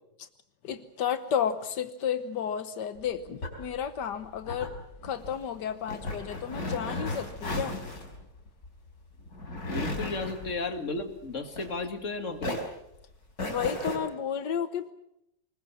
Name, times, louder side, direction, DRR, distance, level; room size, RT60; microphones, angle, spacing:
voice 1, 0.6-4.7 5.0-7.8 10.0-10.2 13.4-14.9, left 8 dB, 85° left, 11 dB, 1.7 m, -32 dB
sound 1, 2.9-12.1 12.4-14.0, left 1 dB, 65° left, 4.9 m, -36 dB
voice 2, 9.7-12.6, left 3 dB, 45° left, 6 dB, 2.5 m, -34 dB
25.0 x 21.5 x 7.1 m, 0.81 s
omnidirectional pair, 1.8 m